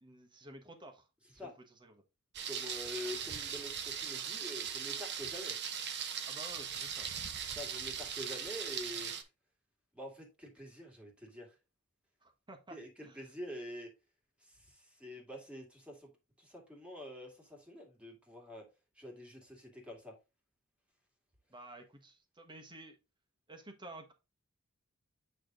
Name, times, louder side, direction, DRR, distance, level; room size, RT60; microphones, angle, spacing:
voice 1, 0.0-1.1 1.3-2.0 6.3-7.1 12.2-12.8 13.0-13.2 21.5-23.0 23.5-24.1, right 1 dB, 20° right, 4 dB, 1.3 m, -52 dB
Thunder, 2.3-9.2, right 7 dB, 55° right, 0.8 m, -39 dB
voice 2, 2.5-5.6 7.6-9.3 9.9-11.6 12.7-13.9 14.4-16.1 16.4-18.6 19.0-20.2, left 1 dB, 5° right, 0 dB, 2.1 m, -46 dB
8.6 x 3.4 x 3.7 m, 0.27 s
head